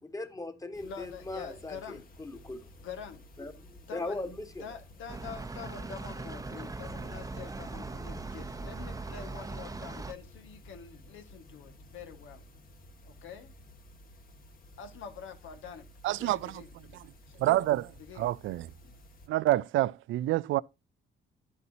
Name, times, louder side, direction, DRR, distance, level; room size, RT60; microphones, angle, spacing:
voice 1, 0.0-2.7 3.4-4.7, left 2 dB, 15° left, 1.7 m, -39 dB
Interior bedroom apartment night room tone roomtone, 0.7-19.3, left 1 dB, 45° left, 2.0 m, -54 dB
voice 2, 0.8-2.0 2.8-3.2 3.9-4.3 4.6-12.4 13.0-13.5 14.8-17.4 18.0-18.3 18.8-19.0, left 7 dB, 80° left, 1.8 m, -46 dB
sound 1, 5.1-10.1, right 3 dB, 15° right, 0.8 m, -40 dB
voice 3, 16.0-16.6 17.4-18.7 19.3-20.6, right 15 dB, 80° right, 0.5 m, -28 dB
10.0 x 8.1 x 2.8 m
cardioid pair, 90°, 20 cm